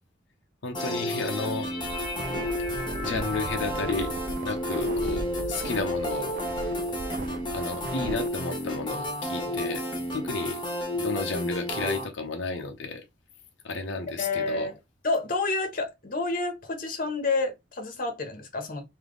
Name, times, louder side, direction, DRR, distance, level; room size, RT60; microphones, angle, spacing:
voice 1, 0.6-1.7 3.0-6.4 7.5-9.8 10.1-10.6 10.9-13.0 13.6-14.7, left 3 dB, 85° left, 0.8 m, -32 dB
sound 1, 0.7-12.0, equal, 25° left, 1.2 m, -31 dB
sound 2, 1.8-8.3, right 2 dB, 45° right, 0.5 m, -38 dB
voice 2, 14.2-14.7 15.0-18.9, left 3 dB, 50° left, 1.1 m, -29 dB
3.5 x 2.8 x 3.8 m
head